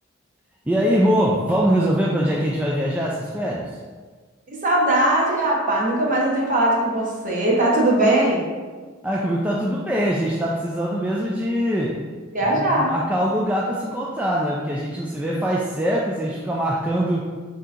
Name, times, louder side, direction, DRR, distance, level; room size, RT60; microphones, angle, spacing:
voice 1, 0.7-3.7 9.0-12.0 12.4-17.3, equal, 5° right, -4 dB, 0.3 m, -23 dB
voice 2, 4.5-8.5 12.3-12.9, right 1 dB, 40° right, -3 dB, 0.9 m, -20 dB
7.4 x 2.8 x 2.5 m, 1.4 s
head